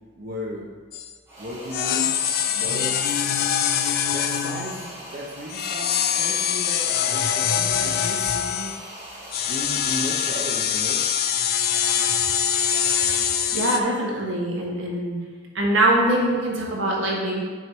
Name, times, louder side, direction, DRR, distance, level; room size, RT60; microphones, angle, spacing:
voice 1, 0.2-0.7 1.4-2.1 2.5-8.8 9.5-11.0, equal, 50° right, -4 dB, 0.9 m, -35 dB
sound 1, 0.9-1.1 1.7-4.9 5.5-8.8 9.3-13.8, left 9 dB, 50° left, 0.4 m, -24 dB
sound 2, 1.3-10.8, right 1 dB, 15° right, 2.0 m, -41 dB
voice 2, 13.5-15.2 15.5-17.4, right 1 dB, 80° right, -2 dB, 1.4 m, -23 dB
6.3 x 4.6 x 4.5 m, 1.5 s
head